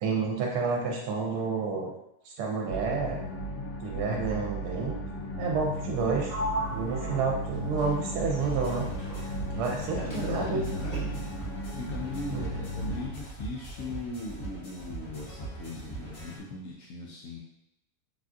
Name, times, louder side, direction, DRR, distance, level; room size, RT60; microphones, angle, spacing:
voice 1, 0.0-1.9 2.3-3.2 3.8-5.0 5.4-6.3 6.7-8.9 9.5-10.6 12.3-12.4, right 4 dB, 85° right, -1 dB, 1.1 m, -29 dB
sound 1, 2.7-13.1, right 1 dB, 85° left, 1.1 m, -35 dB
Sliding door, 6.2-9.8 10.1-11.4, equal, 20° left, 0.4 m, -38 dB
sound 2, 8.4-16.4, right 3 dB, 45° left, 1.4 m, -41 dB
voice 2, 9.9-11.3 11.7-17.4, left 3 dB, 70° left, -2 dB, 0.8 m, -39 dB
3.5 x 2.3 x 2.6 m, 0.82 s
omnidirectional pair, 1.7 m